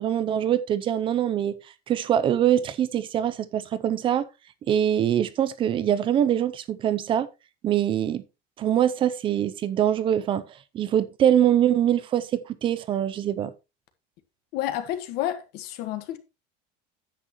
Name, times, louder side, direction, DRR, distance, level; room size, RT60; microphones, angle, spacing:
voice 1, 0.0-1.5 1.9-4.3 4.7-7.3 7.6-8.2 8.6-10.4 10.7-13.5, right 10 dB, 25° right, 0.6 m, -23 dB
voice 2, 14.5-16.2, left 12 dB, 50° left, 1.5 m, -30 dB
10.0 x 8.6 x 3.0 m
cardioid pair, 180°, 20 cm